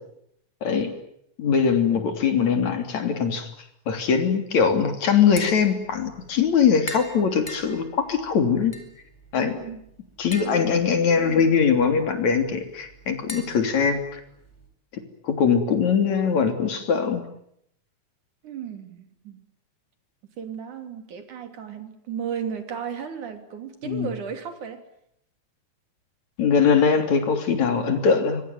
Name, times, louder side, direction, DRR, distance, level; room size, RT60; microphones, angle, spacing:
voice 1, 0.6-0.9 1.4-3.5 3.9-8.7 9.3-9.6 10.2-14.2 15.2-17.2 23.8-24.1 26.4-28.4, left 6 dB, 70° left, 7 dB, 4.5 m, -21 dB
Tap, 5.2-14.7, left 1 dB, 10° left, 4.6 m, -43 dB
voice 2, 9.4-9.8 10.4-10.7 18.4-19.4 20.4-24.8, right 7 dB, 85° right, 8 dB, 4.5 m, -35 dB
26.0 x 23.5 x 9.4 m, 0.74 s
omnidirectional pair, 3.4 m